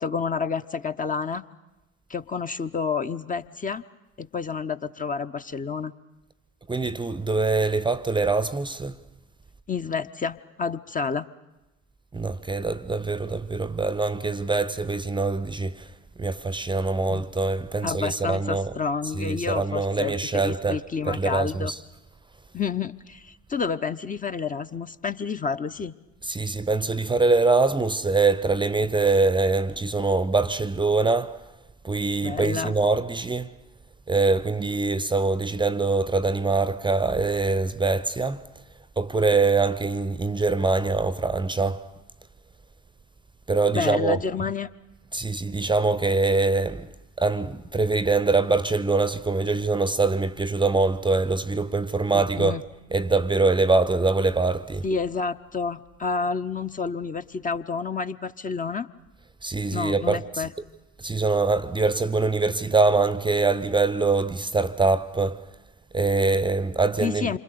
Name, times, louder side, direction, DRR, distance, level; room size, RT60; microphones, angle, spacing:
voice 1, 0.0-1.4 2.1-3.8 4.2-5.9 9.7-11.3 17.1-17.2 17.8-21.7 22.5-25.9 32.2-32.8 43.7-44.7 52.1-52.6 54.8-58.9 59.7-60.5 67.0-67.4, left 5 dB, 20° left, 0.8 m, -29 dB
voice 2, 6.7-9.0 12.1-15.9 16.2-18.8 19.0-21.8 26.2-31.5 31.8-33.5 34.1-38.4 39.0-41.9 43.5-44.5 45.1-52.6 52.9-54.9 59.4-60.5 61.0-65.5 65.9-67.4, right 3 dB, 15° right, 0.8 m, -24 dB
27.5 x 25.5 x 6.9 m
figure-of-eight pair, 60°, 37 cm